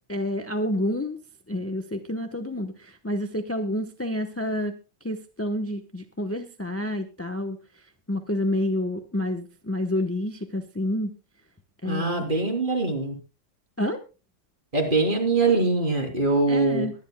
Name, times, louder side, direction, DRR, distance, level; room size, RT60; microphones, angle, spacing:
voice 1, 0.1-1.2 1.5-4.7 5.0-7.6 8.1-11.1 11.8-12.2 13.8-14.0 16.5-16.9, left 1 dB, 15° left, 7 dB, 0.5 m, -29 dB
voice 2, 11.9-13.2 14.7-16.9, right 3 dB, 25° right, 2 dB, 3.5 m, -23 dB
22.5 x 11.0 x 2.2 m, 0.31 s
omnidirectional pair, 2.0 m